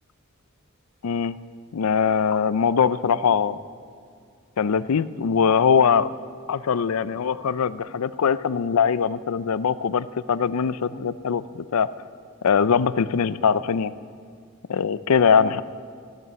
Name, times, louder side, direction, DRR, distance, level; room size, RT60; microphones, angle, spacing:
voice 1, 1.0-1.4 1.7-3.6 4.6-6.1 6.5-11.9 12.4-13.9 14.7-15.6, left 6 dB, 80° left, 16 dB, 0.5 m, -22 dB
15.0 x 12.5 x 6.9 m, 2.2 s
head